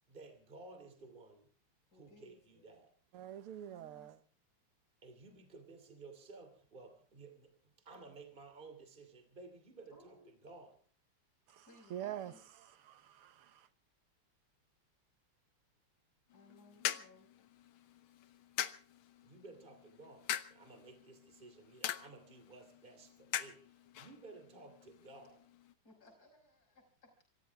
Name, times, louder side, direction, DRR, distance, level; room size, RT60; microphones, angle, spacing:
voice 1, 0.1-1.5 1.9-2.9 5.0-7.5 7.8-10.8 19.2-23.6 23.9-25.4, right 3 dB, 20° right, 2.9 m, -55 dB
voice 2, 1.9-2.8 3.7-4.1 9.9-10.5 11.6-12.4 16.3-17.3 25.8-27.3, left 2 dB, 45° left, 5.9 m, -63 dB
voice 3, 3.1-4.2 11.5-13.7, right 11 dB, 85° right, 2.0 m, -46 dB
sound 1, 16.3-25.7, left 11 dB, 75° left, 1.7 m, -44 dB
26.5 x 15.0 x 3.5 m
omnidirectional pair, 2.4 m